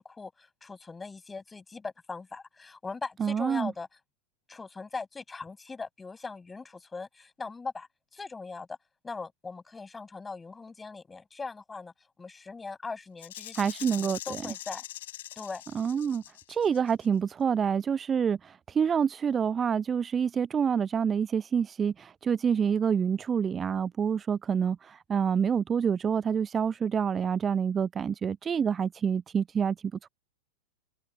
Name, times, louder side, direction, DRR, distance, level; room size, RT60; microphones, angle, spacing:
voice 1, 0.0-3.9 4.5-7.9 8.1-8.7 9.0-11.9 12.2-13.6 14.0-14.8 15.4-15.6, left 4 dB, 10° left, 7.1 m, -40 dB
voice 2, 3.2-3.7 13.5-14.2 15.7-16.2 16.5-30.1, right 7 dB, 20° right, 0.5 m, -27 dB
Rattle (instrument), 13.2-17.1, left 13 dB, 55° left, 4.0 m, -42 dB
figure-of-eight pair, 90°, 0 cm